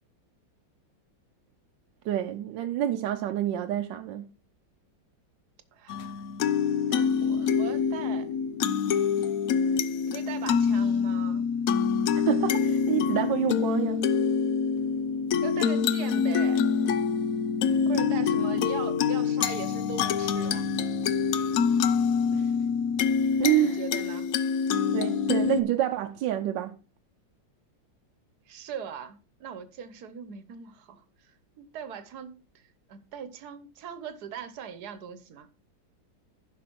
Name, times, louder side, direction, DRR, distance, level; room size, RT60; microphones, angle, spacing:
voice 1, 2.0-4.3 12.1-14.1 22.3-22.5 23.4-23.8 24.9-26.8, right 12 dB, 80° right, 1.3 m, -28 dB
voice 2, 5.7-6.2 6.9-8.3 10.1-11.5 15.4-16.7 17.9-20.7 23.6-24.3 28.5-31.0 31.6-35.5, right 7 dB, 60° right, 1.5 m, -40 dB
sound 1, 5.9-25.6, left 6 dB, 65° left, 0.9 m, -26 dB
11.0 x 6.0 x 4.5 m
omnidirectional pair, 2.0 m